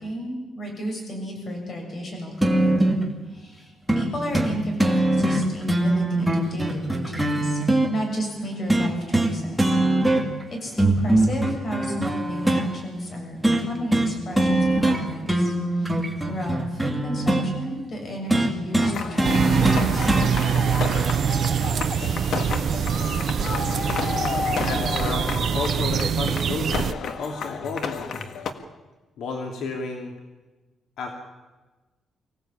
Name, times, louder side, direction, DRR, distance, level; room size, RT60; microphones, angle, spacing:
voice 1, 0.0-3.0 3.3-7.6 7.9-9.8 10.5-15.9 16.2-20.1, equal, 40° left, 2 dB, 7.0 m, -32 dB
sound 1, 2.4-3.0 3.9-4.1 4.3-4.5 4.8-7.9 8.7-9.3 9.6-10.4 10.8-12.6 13.4-13.6 13.9-14.1 14.4-15.0 15.3-17.5 18.3-20.3 21.3-21.4, right 1 dB, 5° right, 2.4 m, -21 dB
sound 2, 18.8-28.5, left 6 dB, 60° left, 1.7 m, -31 dB
sound 3, 19.2-26.9, right 8 dB, 55° right, 0.7 m, -24 dB
voice 2, 24.5-28.1 29.2-30.1 31.0-31.1, left 4 dB, 80° left, 3 dB, 2.7 m, -32 dB
24.5 x 16.5 x 8.8 m, 1.2 s
cardioid pair, 145°, 0 cm